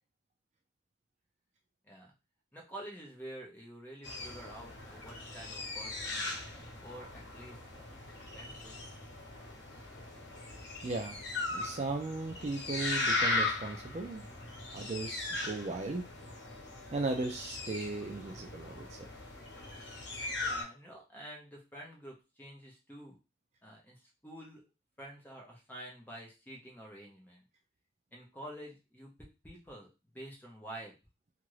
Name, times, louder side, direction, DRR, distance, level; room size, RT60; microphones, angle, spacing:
voice 1, 2.5-8.0 8.3-8.8 20.4-23.2 23.6-24.6 25.0-27.4 28.1-29.1 29.4-29.9 30.1-30.9, right 1 dB, 10° left, -1 dB, 0.8 m, -49 dB
sound 1, 4.0-20.6, left 2 dB, 85° left, 0.8 m, -38 dB
voice 2, 10.8-11.2 11.5-14.2 14.7-16.1 16.9-19.0, right 3 dB, 40° right, 3 dB, 0.4 m, -36 dB
2.8 x 2.5 x 3.0 m, 0.28 s
head